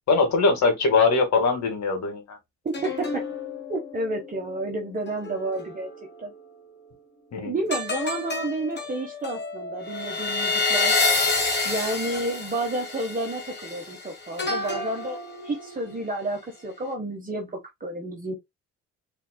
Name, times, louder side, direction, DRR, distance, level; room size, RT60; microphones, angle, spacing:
voice 1, 0.1-2.4 7.3-7.6, left 4 dB, 65° left, 2.0 m, -21 dB
sound 1, 2.7-6.4 7.7-16.2 16.7-16.9, left 3 dB, 35° left, 1.5 m, -29 dB
voice 2, 2.8-3.2 3.7-5.9 6.2-6.3 7.4-11.0 11.6-15.2 15.4-17.5 17.8-18.3, right 2 dB, 30° right, 1.3 m, -30 dB
4.5 x 3.6 x 2.2 m
cardioid pair, 90°, 30 cm